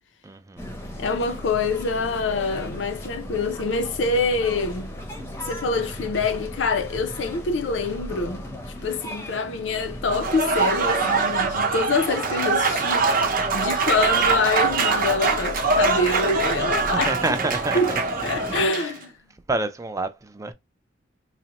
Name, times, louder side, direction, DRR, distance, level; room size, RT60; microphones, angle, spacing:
voice 1, 0.2-0.7 16.8-18.0 18.7-18.9 19.5-20.5, right 2 dB, 15° right, 0.3 m, -28 dB
sound 1, 0.6-18.7, equal, 15° left, 0.7 m, -37 dB
voice 2, 1.0-4.9 5.5-8.5 8.8-17.4 17.7-17.9 18.2-19.1, left 3 dB, 75° left, 0.6 m, -25 dB
Applause / Crowd, 10.1-18.9, right 4 dB, 50° right, 0.7 m, -23 dB
4.0 x 2.1 x 2.8 m
head